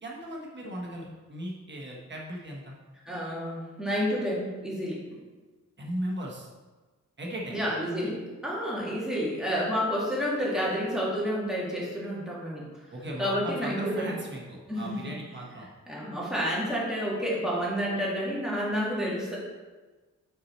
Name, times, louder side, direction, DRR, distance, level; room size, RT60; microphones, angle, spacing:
voice 1, 0.0-2.7 5.8-6.5 7.2-7.6 12.9-15.7, right 1 dB, 35° right, -2 dB, 1.3 m, -37 dB
voice 2, 3.0-5.0 7.5-12.7 13.2-14.2 14.7-15.1 15.9-19.4, equal, ahead, -6 dB, 1.9 m, -30 dB
8.5 x 4.7 x 4.3 m, 1.3 s
wide cardioid pair, 180°, 31 cm